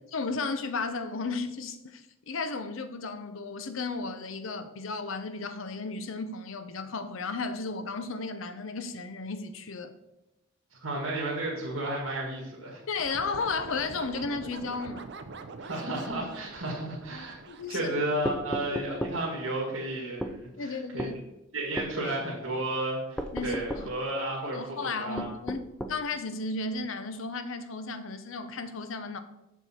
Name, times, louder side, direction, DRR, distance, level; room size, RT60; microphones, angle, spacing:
voice 1, 0.1-10.0 12.9-15.1 17.5-17.9 20.6-21.2 23.3-23.9 24.4-25.6 25.9-29.2, left 4 dB, 70° left, 0.7 m, -34 dB
voice 2, 10.7-12.8 15.6-17.4 17.7-21.1 21.5-25.3, right 1 dB, 75° right, 1.9 m, -33 dB
sound 1, 13.0-18.5, right 3 dB, 55° right, 0.6 m, -44 dB
sound 2, 18.3-19.2 20.2-20.4 21.0-21.2 21.8-22.0 23.2-23.9 25.2-26.0, equal, 5° left, 0.5 m, -34 dB
7.1 x 6.5 x 4.2 m
head